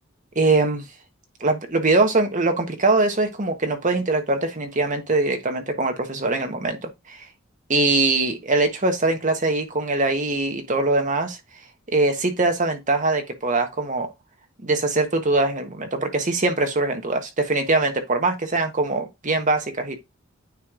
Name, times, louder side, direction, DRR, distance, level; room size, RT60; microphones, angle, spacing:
voice 1, 0.3-0.8 1.4-6.8 7.1-7.3 7.7-11.4 11.9-14.1 14.6-20.0, right 2 dB, 40° right, 1.3 m, -22 dB
9.4 x 3.2 x 3.7 m
head